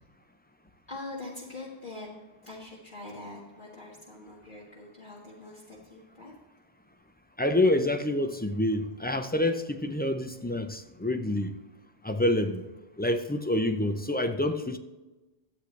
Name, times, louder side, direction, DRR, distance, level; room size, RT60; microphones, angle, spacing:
voice 1, 0.9-2.1 2.4-6.3, left 2 dB, 50° left, -5 dB, 1.9 m, -43 dB
voice 2, 7.4-11.5 12.0-12.7 13.0-14.8, left 1 dB, 15° left, 7 dB, 0.3 m, -27 dB
12.5 x 8.3 x 3.2 m, 1.1 s
omnidirectional pair, 1.1 m